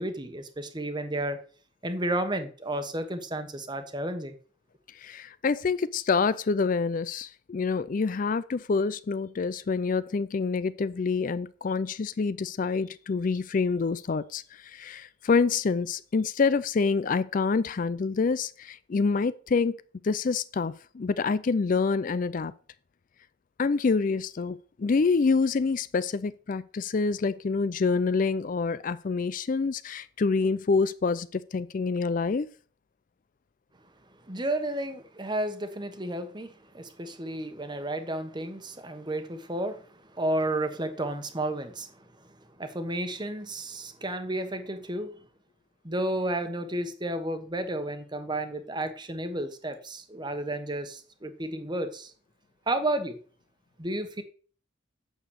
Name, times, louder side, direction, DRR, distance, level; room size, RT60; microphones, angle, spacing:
voice 1, 0.0-1.4 1.8-4.3 34.3-39.8 40.1-41.9 42.6-45.1 45.8-52.1 52.7-53.2 53.8-54.2, right 1 dB, 25° right, 1.2 m, -32 dB
voice 2, 5.0-19.8 20.0-22.5 23.6-32.5, left 4 dB, 45° left, 0.4 m, -27 dB
8.7 x 7.0 x 6.4 m
head